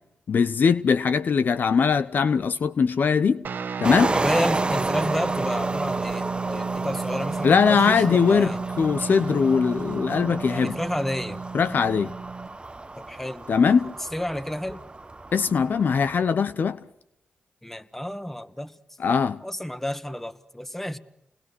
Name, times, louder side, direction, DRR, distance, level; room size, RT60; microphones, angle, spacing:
voice 1, 0.3-3.4 3.8-4.1 7.4-8.5 8.8-10.8 11.5-12.1 13.5-13.9 15.3-16.8 19.0-19.4, left 6 dB, 65° left, 13 dB, 0.8 m, -21 dB
Guitar, 3.4-12.6, right 5 dB, 70° right, 1.3 m, -33 dB
sound 1, 3.8-16.3, right 2 dB, 30° right, 1.0 m, -32 dB
voice 2, 4.1-8.6 10.5-11.4 13.0-14.8 17.6-18.7 19.4-21.0, left 1 dB, 10° left, 10 dB, 1.9 m, -31 dB
29.0 x 20.5 x 6.2 m, 0.82 s
supercardioid pair, 40°, 3 cm